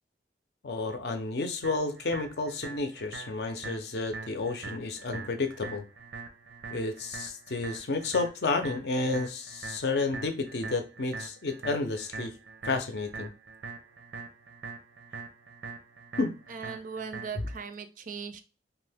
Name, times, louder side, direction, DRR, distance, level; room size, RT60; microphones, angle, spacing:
voice 1, 0.6-5.8 6.7-12.3 12.6-13.3 16.2-16.3 17.3-17.4, left 3 dB, 65° left, 7 dB, 0.5 m, -31 dB
sound 1, 1.6-17.6, right 4 dB, 90° right, 0.6 m, -43 dB
voice 2, 16.5-18.4, right 6 dB, 45° right, 9 dB, 0.4 m, -39 dB
2.7 x 2.4 x 3.4 m, 0.31 s
head